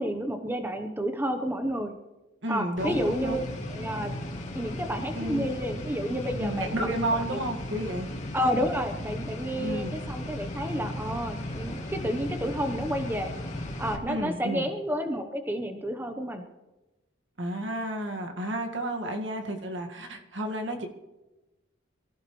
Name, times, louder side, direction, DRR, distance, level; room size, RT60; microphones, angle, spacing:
voice 1, 0.0-1.9 2.5-3.4 3.7-4.1 4.5-6.9 7.3-7.4 8.3-13.3 13.8-16.4, equal, 10° right, 6 dB, 0.9 m, -30 dB
voice 2, 2.4-3.4 5.1-5.5 6.4-8.1 9.6-9.9 14.1-14.7 17.4-20.9, right 1 dB, 65° right, 3 dB, 1.7 m, -31 dB
sound 1, 2.8-14.0, left 1 dB, 40° left, 2.1 m, -36 dB
24.0 x 14.5 x 3.1 m, 1.1 s
head